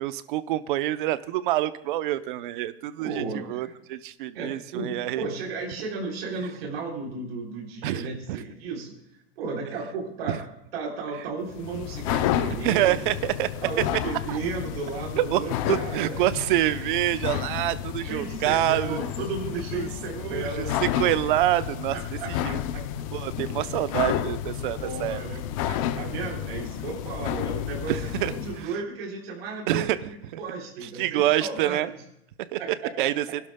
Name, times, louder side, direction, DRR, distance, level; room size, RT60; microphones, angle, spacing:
voice 1, 0.0-5.2 7.8-8.0 8.3-8.4 10.3-10.4 12.6-13.5 14.3-14.4 15.2-15.4 15.7-19.0 19.7-19.9 20.2-20.4 20.8-22.0 22.3-22.6 23.1-25.2 27.9-28.7 29.7-30.0 31.0-31.9 32.5-32.6 33.0-33.2, right 14 dB, 55° right, 14 dB, 0.7 m, -26 dB
voice 2, 3.0-3.7 4.3-9.0 9.4-10.5 10.7-13.1 13.6-16.2 17.3-20.8 21.9-22.9 24.8-31.9 32.6-32.9, right 4 dB, 70° right, -1 dB, 3.7 m, -34 dB
sound 1, 11.5-28.7, left 11 dB, 35° left, 0.5 m, -31 dB
29.0 x 12.0 x 2.2 m, 0.82 s
supercardioid pair, 175°, 31 cm